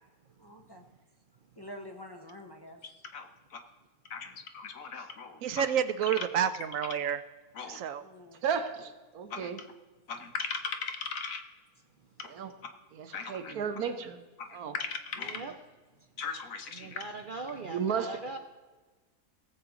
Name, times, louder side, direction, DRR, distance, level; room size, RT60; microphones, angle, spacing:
voice 1, 0.4-0.9 1.6-2.9 8.0-8.4, left 1 dB, 20° left, 2 dB, 0.8 m, -47 dB
voice 2, 3.1-3.6 4.1-5.6 6.2-6.3 7.5-7.8 9.3-9.5 10.1-11.4 13.1-13.5 14.4-15.4 16.2-17.0, left 5 dB, 65° left, 6 dB, 1.4 m, -38 dB
voice 3, 5.4-7.2 7.7-8.0, right 9 dB, 70° right, 12 dB, 0.9 m, -29 dB
voice 4, 8.4-9.6 12.3-12.5 12.9-14.2 14.5-14.7 17.7-18.1, right 7 dB, 90° right, 8 dB, 1.4 m, -33 dB
voice 5, 13.4-14.0 15.2-15.6 16.7-18.4, right 3 dB, 50° right, 5 dB, 0.6 m, -42 dB
18.0 x 7.5 x 3.7 m, 1.3 s
omnidirectional pair, 1.5 m